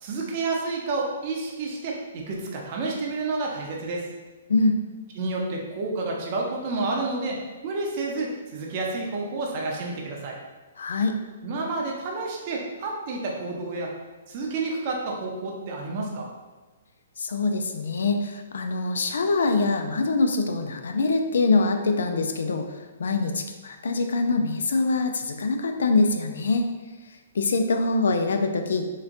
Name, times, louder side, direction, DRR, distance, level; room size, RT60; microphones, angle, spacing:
voice 1, 0.0-4.1 5.2-10.4 11.4-14.0 14.3-16.3, right 3 dB, 45° right, -1 dB, 0.6 m, -30 dB
voice 2, 10.8-11.2 17.2-26.7 27.3-28.9, left 3 dB, 80° left, 6 dB, 0.3 m, -24 dB
3.9 x 2.2 x 2.5 m, 1.3 s
hypercardioid pair, 145°, 0 cm